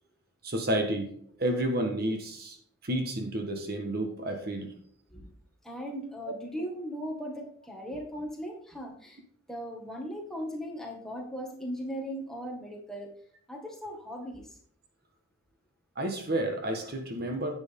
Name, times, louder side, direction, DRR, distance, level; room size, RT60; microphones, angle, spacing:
voice 1, 0.4-1.1 1.4-2.6 2.8-4.7 15.9-17.5, right 1 dB, 45° right, 5 dB, 1.4 m, -30 dB
voice 2, 5.6-9.2 9.5-13.1 13.5-14.6, equal, ahead, 0 dB, 1.8 m, -38 dB
10.5 x 8.1 x 3.6 m, 0.62 s
head